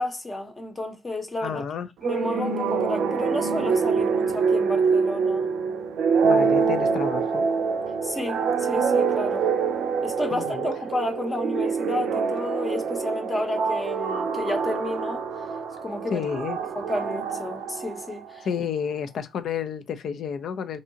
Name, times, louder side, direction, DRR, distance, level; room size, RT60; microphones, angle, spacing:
voice 1, 0.0-1.6 2.0-5.5 8.0-9.5 10.0-15.3 15.8-16.2 16.7-18.5, left 1 dB, 25° left, 0.8 m, -31 dB
voice 2, 1.4-1.9 6.2-7.5 10.3-10.7 16.1-16.6 18.4-20.8, left 7 dB, 65° left, 0.4 m, -30 dB
sound 1, 2.0-18.4, right 5 dB, 80° right, 0.4 m, -25 dB
2.7 x 2.3 x 2.7 m
cardioid pair, 90°, 0 cm